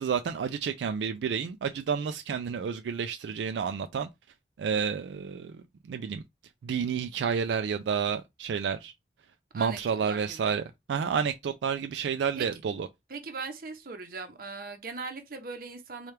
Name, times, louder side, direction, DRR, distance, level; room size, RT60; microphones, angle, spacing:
voice 1, 0.0-4.1 4.6-6.2 6.6-8.9 9.5-12.9, right 6 dB, 80° right, 0.3 m, -30 dB
voice 2, 9.5-10.5 12.4-12.5 13.1-16.1, right 4 dB, 55° right, 0.8 m, -39 dB
4.3 x 2.3 x 3.3 m
head